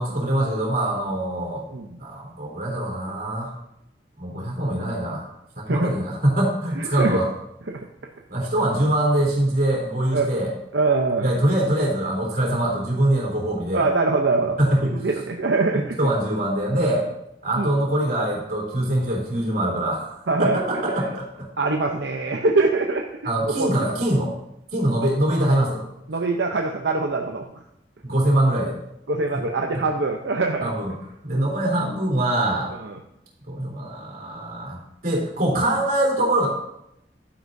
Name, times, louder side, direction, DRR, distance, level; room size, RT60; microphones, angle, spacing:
voice 1, 0.0-1.7 2.0-3.5 4.2-5.3 5.6-7.3 8.3-10.5 11.2-13.9 14.6-14.9 15.7-17.1 17.4-20.1 20.4-21.5 23.2-24.3 24.7-25.8 28.0-28.8 29.3-29.4 30.6-30.9 31.2-32.7 33.5-34.8 35.0-36.5, right 1 dB, 55° right, -2 dB, 3.6 m, -23 dB
voice 2, 6.8-7.2 7.7-7.9 10.1-10.3 10.7-11.3 13.7-14.6 14.9-16.0 17.6-17.8 20.3-20.6 21.6-23.0 23.4-23.7 26.1-27.5 29.1-30.7 31.3-31.5 32.8-33.0, right 3 dB, 80° right, 2 dB, 0.8 m, -23 dB
11.5 x 9.8 x 2.7 m, 0.80 s
head